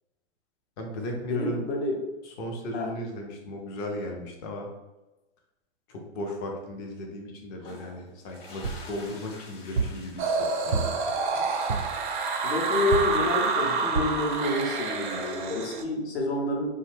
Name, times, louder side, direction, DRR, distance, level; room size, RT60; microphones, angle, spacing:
voice 1, 0.8-1.6 2.2-4.7 5.9-11.0, equal, 20° left, 2 dB, 0.3 m, -36 dB
voice 2, 1.3-2.0 2.7-2.9 12.4-16.7, left 2 dB, 70° left, 0 dB, 0.8 m, -28 dB
sound 1, 7.5-12.1, left 3 dB, 40° left, 0.8 m, -49 dB
sound 2, 8.6-8.9 9.8-10.1 10.7-11.1 11.7-12.0 12.9-13.3 14.0-14.2 14.8-14.9 15.2-15.3, right 4 dB, 90° right, 0.7 m, -29 dB
sound 3, 10.2-15.8, right 4 dB, 50° right, 0.4 m, -28 dB
2.5 x 2.2 x 3.1 m, 1.1 s
hypercardioid pair, 120°, 34 cm